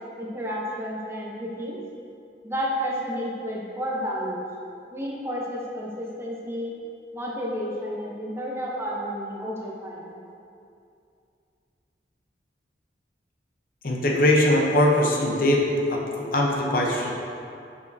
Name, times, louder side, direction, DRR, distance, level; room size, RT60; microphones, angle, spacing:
voice 1, 0.2-1.8 2.4-4.4 4.9-6.8 7.1-10.2, equal, 15° right, -4 dB, 0.7 m, -31 dB
voice 2, 13.8-15.6 15.9-16.0 16.3-17.1, left 1 dB, 50° left, -1 dB, 0.7 m, -21 dB
6.8 x 5.4 x 2.6 m, 2.5 s
head